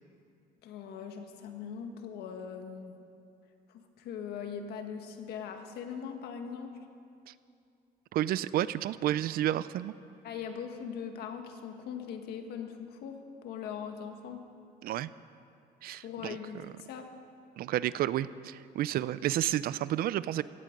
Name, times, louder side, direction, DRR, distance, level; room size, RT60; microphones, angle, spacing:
voice 1, 0.6-3.0 3.7-6.7 10.2-14.4 15.9-17.1, left 7 dB, 85° left, 5 dB, 1.6 m, -41 dB
voice 2, 8.1-9.9 14.8-15.1 15.8-16.4 17.6-20.4, right 13 dB, 70° right, 17 dB, 0.5 m, -31 dB
17.0 x 15.0 x 5.3 m, 2.5 s
cardioid pair, 125°, 16 cm